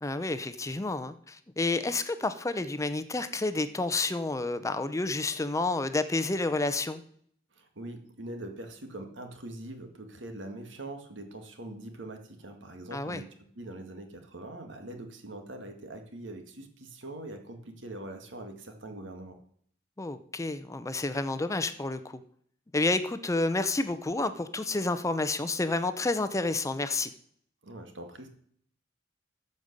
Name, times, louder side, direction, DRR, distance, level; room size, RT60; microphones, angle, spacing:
voice 1, 0.0-7.0 12.9-13.2 20.0-22.2 22.7-27.1, left 2 dB, 15° left, 11 dB, 0.6 m, -30 dB
voice 2, 7.5-19.4 27.6-28.3, right 1 dB, 75° right, 6 dB, 1.9 m, -43 dB
14.0 x 5.4 x 6.6 m, 0.63 s
head